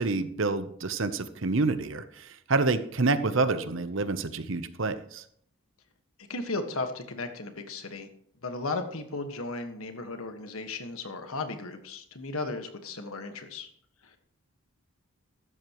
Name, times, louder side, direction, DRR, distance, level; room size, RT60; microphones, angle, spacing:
voice 1, 0.0-5.2, right 3 dB, 65° right, 12 dB, 0.9 m, -28 dB
voice 2, 6.3-8.1 8.4-13.7 14.0-14.2, left 3 dB, 80° left, 6 dB, 1.6 m, -35 dB
15.0 x 12.5 x 3.1 m, 0.67 s
head